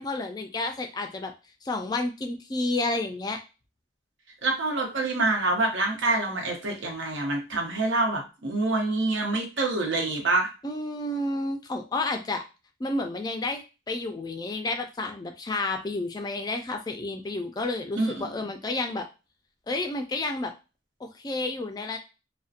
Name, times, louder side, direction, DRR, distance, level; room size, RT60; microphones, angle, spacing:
voice 1, 0.0-1.3 1.6-3.4 10.6-12.4 12.8-19.1 19.7-20.5 21.0-22.0, left 2 dB, 20° left, 5 dB, 0.3 m, -30 dB
voice 2, 4.4-10.5 18.0-18.3, right 2 dB, 90° right, 1 dB, 0.8 m, -26 dB
2.5 x 2.1 x 2.4 m, 0.29 s
head